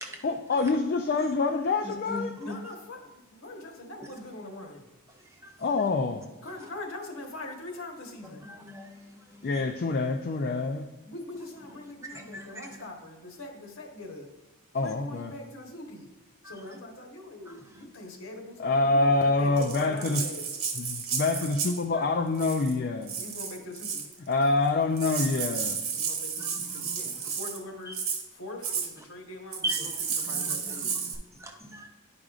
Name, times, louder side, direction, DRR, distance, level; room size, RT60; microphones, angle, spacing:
voice 1, 0.2-2.3 5.6-6.2 9.4-10.8 14.7-15.3 18.6-20.2 20.8-23.2 24.3-25.8, left 3 dB, 45° left, 0.4 m, -26 dB
voice 2, 1.8-2.6 5.4-5.5 8.4-9.5 12.1-12.6 16.4-16.6 26.4-26.9 29.6-29.9 30.2-31.1 31.4-31.9, equal, 15° right, 0.6 m, -38 dB
voice 3, 2.3-4.8 6.4-8.4 9.3-9.4 11.0-14.3 14.8-16.1 16.4-20.4 23.1-24.1 25.9-28.0 28.3-30.9, left 2 dB, 70° left, 1.2 m, -42 dB
Rattle (instrument), 19.6-21.8 22.3-22.7 23.1-24.1 24.7-24.8 25.0-27.6 27.9-28.2 28.6-28.9 29.5-31.2, right 6 dB, 75° right, 1.1 m, -32 dB
10.5 x 4.9 x 2.4 m
head